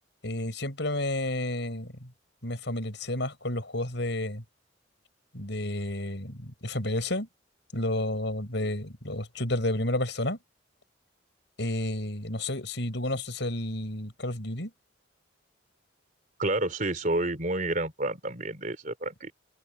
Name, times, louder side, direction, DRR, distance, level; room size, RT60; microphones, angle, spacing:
voice 1, 0.2-2.1 2.4-4.4 5.3-7.3 7.7-10.4 11.6-14.7, left 1 dB, 60° left, 6.3 m, -31 dB
voice 2, 16.4-19.3, right 2 dB, 40° right, 3.5 m, -29 dB
head